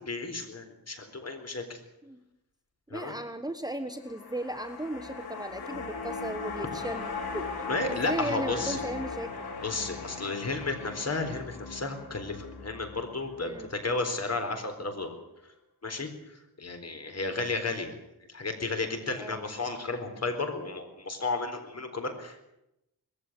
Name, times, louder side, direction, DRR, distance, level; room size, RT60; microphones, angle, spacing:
voice 1, 0.0-1.8 2.9-3.1 7.7-8.8 9.6-15.2 15.8-18.0 18.3-22.4, left 3 dB, 45° left, 6 dB, 4.2 m, -33 dB
voice 2, 2.9-9.3 13.4-13.7 19.2-19.4, right 1 dB, 10° right, 8 dB, 1.2 m, -36 dB
sound 1, 4.0-14.4 14.7-14.8, left 4 dB, 85° left, 4.4 m, -39 dB
20.5 x 15.5 x 9.8 m, 0.87 s
wide cardioid pair, 115°, 37 cm